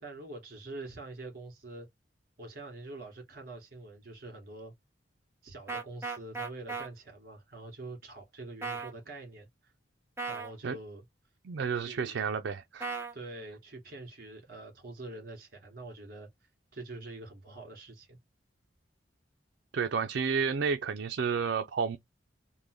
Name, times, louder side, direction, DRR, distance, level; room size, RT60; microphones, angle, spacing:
voice 1, 0.0-1.9 2.4-4.7 5.4-9.7 10.3-11.0 11.7-12.2 13.1-16.3 16.7-18.2, right 2 dB, 55° right, 2.0 m, -45 dB
sound 1, 5.7-6.9 8.6-8.9 10.2-10.5 12.8-13.1, right 4 dB, 15° right, 1.0 m, -36 dB
voice 2, 11.4-12.9 19.7-22.0, right 6 dB, 75° right, 0.4 m, -31 dB
3.7 x 2.1 x 3.1 m
head